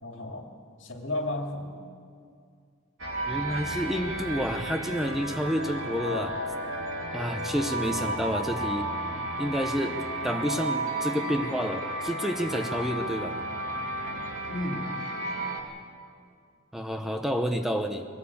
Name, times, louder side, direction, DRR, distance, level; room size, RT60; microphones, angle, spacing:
voice 1, 0.0-0.5 0.8-1.8 5.9-6.0 14.5-15.0, left 1 dB, 70° left, 3 dB, 2.3 m, -33 dB
sound 1, 3.0-15.6, right 1 dB, 90° right, 2.7 m, -33 dB
voice 2, 3.3-6.4 7.1-8.9 9.4-13.4 16.7-18.1, equal, ahead, 5 dB, 0.8 m, -29 dB
22.0 x 17.5 x 8.5 m, 2.3 s
head